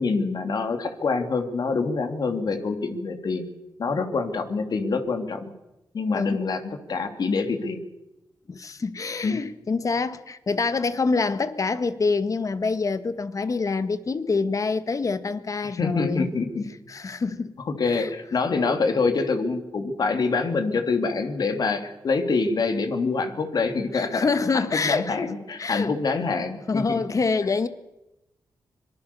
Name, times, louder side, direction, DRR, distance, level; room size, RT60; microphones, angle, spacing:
voice 1, 0.0-3.5 3.8-5.5 5.9-7.8 9.2-9.4 15.8-16.7 17.6-24.3 24.5-27.0, left 4 dB, 60° left, 3.1 m, -26 dB
voice 2, 8.5-16.3 16.9-17.5 17.8-18.1 23.9-25.9 26.7-27.7, left 4 dB, 45° left, 1.8 m, -26 dB
25.5 x 19.5 x 7.1 m
cardioid pair, 60°, 8 cm